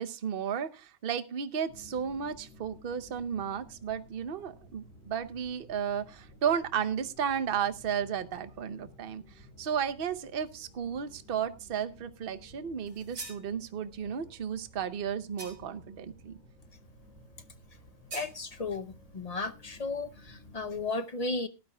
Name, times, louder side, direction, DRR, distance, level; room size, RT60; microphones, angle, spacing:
voice 1, 0.0-16.4, right 8 dB, 45° right, 11 dB, 0.9 m, -33 dB
sound 1, 1.7-20.9, equal, 75° left, 7.8 m, -55 dB
sound 2, 12.9-13.5 15.4-15.8 18.1-18.4, right 3 dB, 85° right, 4.0 m, -43 dB
voice 2, 18.1-21.5, left 3 dB, 40° left, 12 dB, 0.5 m, -34 dB
18.5 x 12.5 x 2.2 m, 0.27 s
omnidirectional pair, 1.4 m